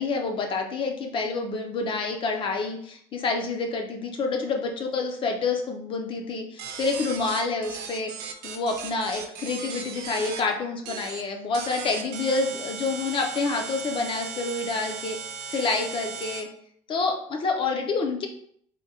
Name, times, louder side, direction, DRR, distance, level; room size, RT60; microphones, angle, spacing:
voice 1, 0.0-8.1 8.4-16.5 16.9-18.3, left 3 dB, 30° left, 3 dB, 0.5 m, -28 dB
sound 1, 6.6-10.4 10.8-11.2 11.5-16.4, right 6 dB, 80° right, 0.6 m, -37 dB
3.5 x 2.2 x 4.1 m, 0.66 s
cardioid pair, 165°, 16 cm